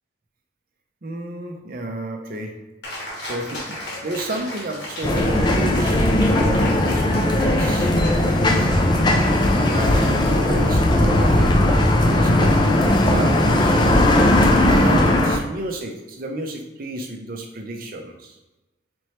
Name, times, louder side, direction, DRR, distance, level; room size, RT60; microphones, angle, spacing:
voice 1, 1.0-2.6 2.9-18.4, right 1 dB, 45° right, 2 dB, 0.5 m, -32 dB
Cheering, 2.8-11.8, left 1 dB, 60° left, 1.0 m, -36 dB
sound 1, 5.0-15.4, left 1 dB, 25° left, 0.3 m, -17 dB
4.3 x 2.8 x 3.1 m, 1.0 s
head